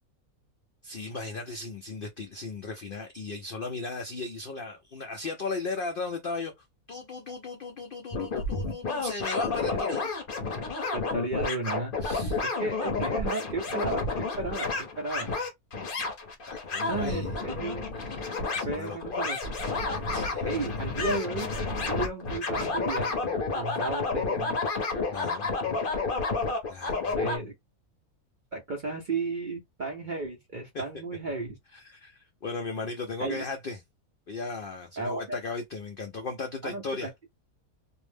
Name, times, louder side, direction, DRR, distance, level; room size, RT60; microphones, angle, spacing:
voice 1, 0.8-10.0 12.0-12.4 16.5-17.3 18.0-19.3 20.1-20.7 25.1-25.5 26.7-27.1 30.7-30.8 31.7-33.8 34.3-37.1, left 3 dB, 90° left, 0.4 m, -37 dB
sound 1, 8.1-27.4, left 3 dB, 45° left, 0.8 m, -30 dB
voice 2, 10.9-11.9 12.4-15.3 16.9-17.9 18.6-19.5 20.4-21.5 21.9-23.1 23.5-24.6 27.2-27.5 28.5-31.6 33.2-33.4 35.0-35.4 36.6-37.1, right 3 dB, 55° right, 0.5 m, -34 dB
2.5 x 2.0 x 3.2 m
omnidirectional pair, 1.6 m